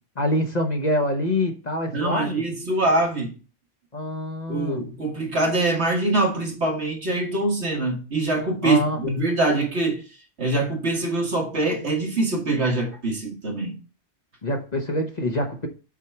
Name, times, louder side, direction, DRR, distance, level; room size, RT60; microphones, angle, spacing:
voice 1, 0.2-2.4 3.9-4.8 8.6-9.0 14.4-15.7, left 1 dB, 35° left, 1.1 m, -25 dB
voice 2, 1.9-3.4 4.5-10.0 10.4-13.8, right 2 dB, 60° right, 1.9 m, -24 dB
7.4 x 4.6 x 4.5 m
omnidirectional pair, 1.3 m